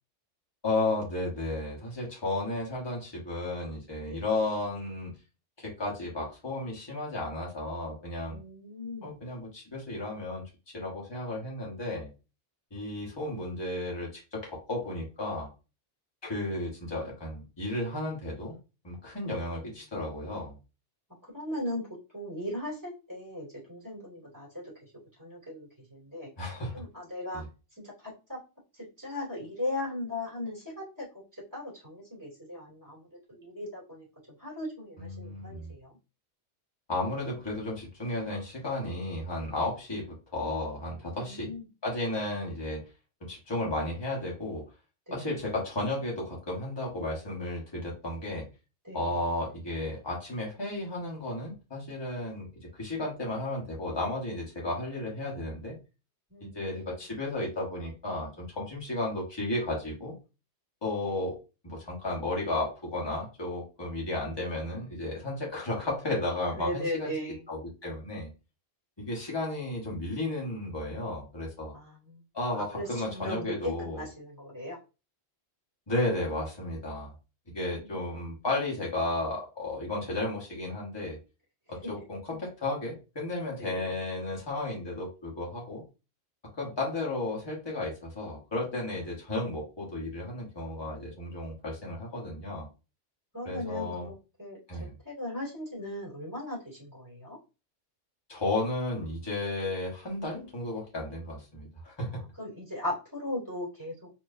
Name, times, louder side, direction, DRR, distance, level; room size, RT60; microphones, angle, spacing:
voice 1, 0.6-5.1 5.6-8.4 9.0-10.4 10.7-12.1 12.7-15.5 16.2-18.6 18.8-20.6 26.4-26.8 27.3-27.4 35.0-35.7 36.9-40.0 40.3-41.5 41.8-42.8 43.2-44.6 45.1-48.5 48.9-52.5 52.7-55.8 56.4-60.1 60.8-61.4 61.6-67.1 67.5-68.3 69.0-71.7 72.3-74.0 75.9-77.1 77.5-81.2 81.7-85.8 86.6-92.7 93.4-94.1 94.7-94.9 98.3-102.2, left 2 dB, 20° left, -3 dB, 1.5 m, -33 dB
voice 2, 8.3-9.2 21.2-21.9 22.1-24.9 25.2-26.3 26.7-27.4 27.8-28.4 28.7-34.0 34.4-36.0 41.2-41.6 45.1-45.4 48.8-49.1 56.3-56.9 66.5-67.4 71.7-72.2 72.6-74.8 77.5-78.1 81.8-82.0 83.6-83.9 93.3-97.4 102.0-104.1, left 1 dB, 15° right, -7 dB, 2.6 m, -38 dB
4.5 x 3.1 x 2.7 m, 0.30 s
omnidirectional pair, 1.2 m